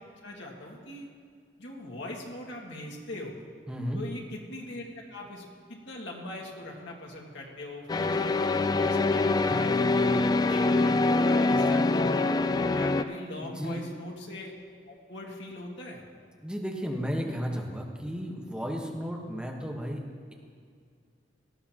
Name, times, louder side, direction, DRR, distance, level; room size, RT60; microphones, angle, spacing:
voice 1, 0.2-1.1 1.6-3.4 3.9-10.1 10.5-12.3 12.7-14.6 14.9-16.0, left 1 dB, 90° left, -2 dB, 2.1 m, -41 dB
voice 2, 3.7-4.0 13.4-13.8 16.4-20.0, equal, 5° right, 0 dB, 1.3 m, -33 dB
sound 1, 7.9-13.0, left 3 dB, 20° left, 0.3 m, -24 dB
18.5 x 12.0 x 3.0 m, 2.2 s
head